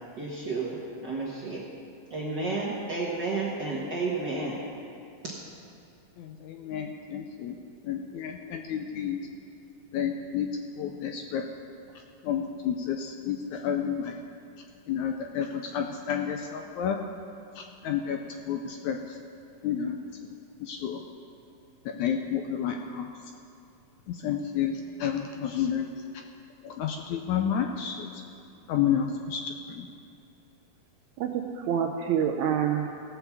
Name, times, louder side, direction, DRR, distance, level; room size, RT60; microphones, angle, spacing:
voice 1, 0.2-0.8 1.0-1.6 2.1-4.6, right 3 dB, 55° right, -5 dB, 1.2 m, -31 dB
voice 2, 6.2-7.6 7.8-9.2 9.9-10.5 10.8-11.5 12.2-14.2 14.9-17.0 17.6-18.2 18.5-19.2 19.6-20.3 20.6-21.0 21.9-23.1 24.1-25.9 26.6-28.1 28.7-29.9, left 8 dB, 80° left, 4 dB, 1.7 m, -30 dB
voice 3, 31.2-33.0, right 8 dB, 80° right, 3 dB, 1.7 m, -27 dB
17.5 x 5.8 x 6.9 m, 2.5 s
omnidirectional pair, 3.8 m